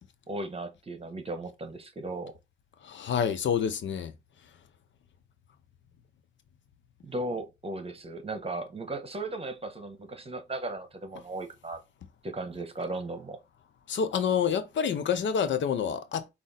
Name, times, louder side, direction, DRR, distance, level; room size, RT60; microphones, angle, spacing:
voice 1, 0.3-2.3 7.0-11.8 12.2-13.4, right 2 dB, 30° right, 1.2 m, -36 dB
voice 2, 2.8-4.1 13.9-16.3, left 7 dB, 65° left, 0.7 m, -28 dB
5.0 x 2.6 x 4.0 m
cardioid pair, 85°, 21 cm